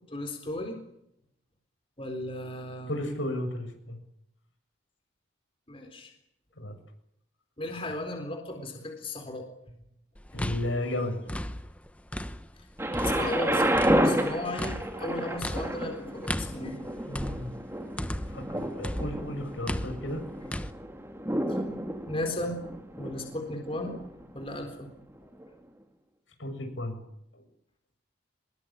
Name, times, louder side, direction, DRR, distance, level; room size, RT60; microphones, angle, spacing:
voice 1, 0.1-0.8 2.0-2.9 5.7-6.1 7.6-9.5 13.0-16.9 22.1-22.6 23.0-24.0 24.3-24.9, left 1 dB, 30° left, 4 dB, 4.0 m, -35 dB
voice 2, 2.9-4.0 6.6-6.8 10.3-11.2 17.1-17.5 18.3-20.2 26.4-27.0 27.3-27.5, left 1 dB, 80° left, 5 dB, 7.2 m, -33 dB
sound 1, 10.2-12.6 12.9-18.5 18.8-20.7, left 1 dB, 5° left, 1.0 m, -35 dB
Thunder, 12.8-24.6 25.4-25.5, right 1 dB, 15° right, 2.4 m, -31 dB
24.5 x 22.0 x 8.9 m, 0.78 s
head